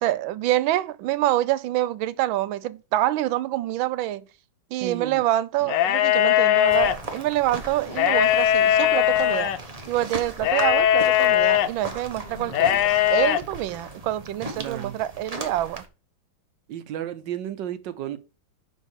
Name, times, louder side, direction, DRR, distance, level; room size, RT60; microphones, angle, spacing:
voice 1, 0.0-4.2 4.7-9.5 9.9-15.8, right 14 dB, 90° right, 1.4 m, -26 dB
voice 2, 4.8-5.2 12.5-12.8 14.6-15.0 16.7-18.2, right 10 dB, 70° right, 1.4 m, -33 dB
sound 1, 5.6-6.9 7.9-9.6 10.4-11.7 12.5-13.4, left 12 dB, 75° left, 1.3 m, -20 dB
sound 2, 6.7-15.9, right 2 dB, 25° right, 0.9 m, -38 dB
5.7 x 5.5 x 6.3 m
omnidirectional pair, 2.1 m